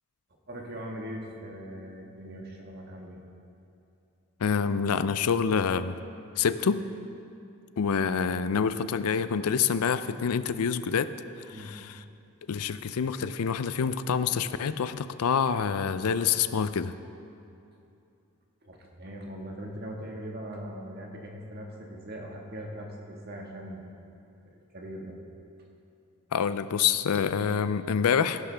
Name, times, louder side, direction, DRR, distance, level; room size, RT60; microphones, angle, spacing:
voice 1, 0.5-3.2 11.5-11.7 18.6-23.9 24.4-25.1, equal, 45° right, 0 dB, 1.6 m, -40 dB
voice 2, 4.4-6.0 6.4-6.8 7.8-11.1 11.5-12.0 12.5-16.9 26.3-28.4, left 6 dB, 80° left, 13 dB, 0.4 m, -27 dB
15.5 x 11.5 x 3.4 m, 2.7 s
head